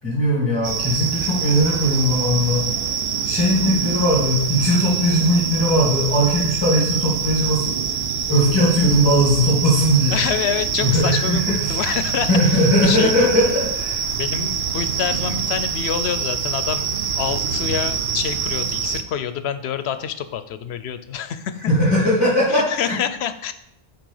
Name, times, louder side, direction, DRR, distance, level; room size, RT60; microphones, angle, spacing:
voice 1, 0.0-2.6 3.2-7.7 8.3-10.2 10.8-11.4 11.7-11.8 12.3-14.0 21.7-22.9, equal, 25° left, -9 dB, 2.4 m, -19 dB
sound 1, 0.6-19.0, right 7 dB, 75° right, 0.9 m, -25 dB
voice 2, 10.1-13.3 14.2-21.7 22.5-23.5, left 9 dB, 90° left, 12 dB, 0.9 m, -27 dB
6.0 x 4.6 x 5.4 m, 0.79 s
omnidirectional pair, 1.1 m